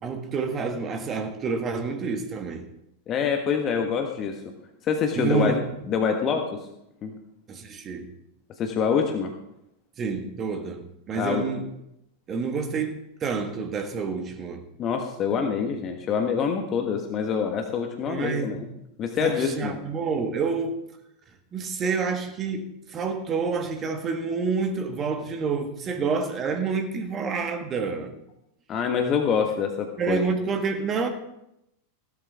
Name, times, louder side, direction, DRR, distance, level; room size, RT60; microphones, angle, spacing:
voice 1, 0.0-2.6 5.2-5.6 7.5-8.1 10.0-11.6 12.3-14.6 18.1-18.6 19.2-20.8 21.5-28.1 30.0-31.1, right 5 dB, 25° right, 7 dB, 1.8 m, -28 dB
voice 2, 3.1-4.3 4.8-5.5 5.9-6.6 7.0-7.1 8.6-9.3 11.1-11.4 14.8-18.6 19.0-19.8 28.7-30.2, left 6 dB, 30° left, 4 dB, 1.4 m, -25 dB
16.5 x 12.5 x 3.5 m, 0.83 s
figure-of-eight pair, 90°, 0 cm